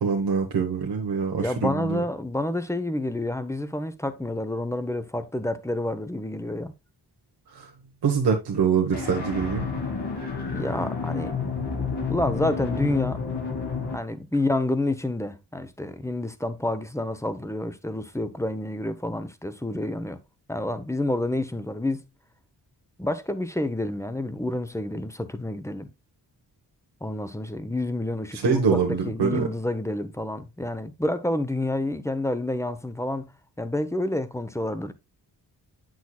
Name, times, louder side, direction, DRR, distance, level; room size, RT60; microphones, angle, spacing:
voice 1, 0.0-2.0 7.5-7.7 8.0-9.6 28.3-29.5, right 6 dB, 70° right, 1.2 m, -24 dB
voice 2, 1.4-6.7 10.5-11.3 12.1-13.2 13.9-20.2 20.5-22.0 23.0-25.9 27.0-33.3 33.6-34.9, left 1 dB, 5° left, 0.8 m, -29 dB
sound 1, 8.9-14.0, left 5 dB, 75° left, 2.7 m, -30 dB
8.1 x 6.4 x 2.3 m
cardioid pair, 60°, 40 cm